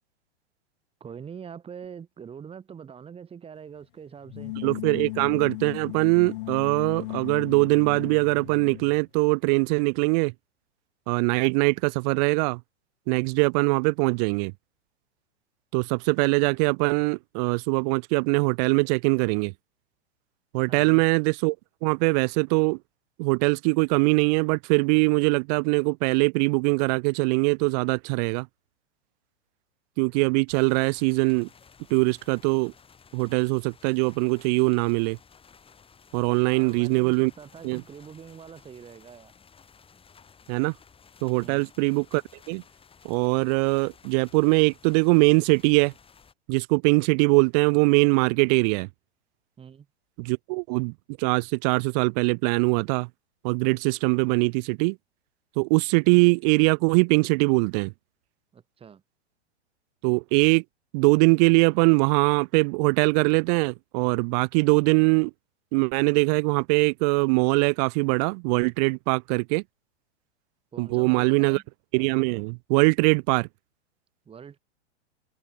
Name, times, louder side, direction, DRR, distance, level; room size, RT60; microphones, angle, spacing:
voice 1, 1.0-4.5 20.7-21.0 36.4-39.3 41.4-41.7 49.6-49.9 58.5-59.0 70.7-71.6 74.3-74.6, right 7 dB, 15° right, 2.0 m, -44 dB
sound 1, 4.2-9.0, left 21 dB, 50° left, 0.9 m, -36 dB
voice 2, 4.6-10.3 11.1-12.6 13.1-14.5 15.7-19.5 20.5-21.6 21.8-22.8 23.2-28.5 30.0-31.5 31.9-32.7 33.1-35.2 36.1-37.3 37.6-37.8 40.5-40.7 41.2-42.2 42.5-42.6 43.0-45.9 46.5-48.9 50.2-53.1 53.4-55.0 55.6-57.9 60.0-60.6 60.9-65.3 65.7-69.6 70.8-71.6 71.9-73.5, right 32 dB, 35° right, 0.6 m, -22 dB
sound 2, 30.5-46.3, left 6 dB, 15° left, 7.5 m, -55 dB
hypercardioid pair, 115°, 34 cm